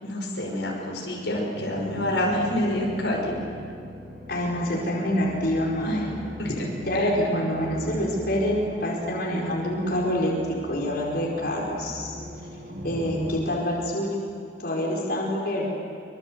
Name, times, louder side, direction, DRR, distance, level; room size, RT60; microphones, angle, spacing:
voice 1, 0.0-3.4 5.8-6.7 7.0-7.1, left 1 dB, 80° left, -1 dB, 5.6 m, -27 dB
sound 1, 1.5-13.4, equal, 55° right, 5.9 m, -40 dB
voice 2, 4.3-6.1 6.8-10.3 10.6-12.2 12.8-14.2 14.6-15.7, left 1 dB, 60° left, -3 dB, 5.2 m, -26 dB
25.5 x 25.0 x 7.9 m, 2.4 s
head